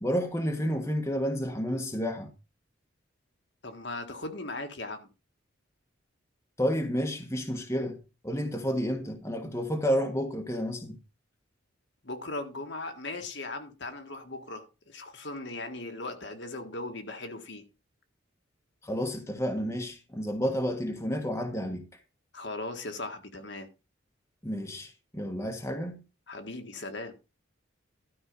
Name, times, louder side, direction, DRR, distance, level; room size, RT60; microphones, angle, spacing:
voice 1, 0.0-2.3 6.6-11.0 18.8-21.9 24.4-26.0, equal, 15° left, 1.4 m, -30 dB
voice 2, 3.6-5.1 12.0-17.6 22.3-23.7 26.3-27.1, left 2 dB, 60° left, 1.7 m, -38 dB
12.5 x 5.5 x 5.3 m
head